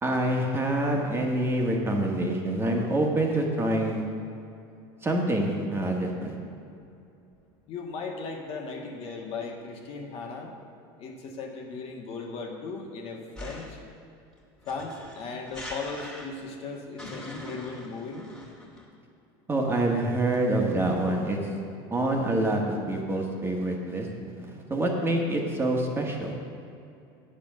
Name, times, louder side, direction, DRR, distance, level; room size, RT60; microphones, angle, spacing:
voice 1, 0.0-4.0 5.0-6.3 19.5-21.4 21.9-24.1 24.5-26.3, right 1 dB, 20° right, 0 dB, 1.5 m, -26 dB
voice 2, 7.7-10.5 11.0-13.8 14.6-18.3, left 4 dB, 50° left, 1 dB, 1.6 m, -37 dB
sound 1, 13.4-13.9 14.6-16.5 17.0-18.8, left 1 dB, 5° left, 2.4 m, -41 dB
9.1 x 7.1 x 6.4 m, 2.6 s
supercardioid pair, 110°, 13 cm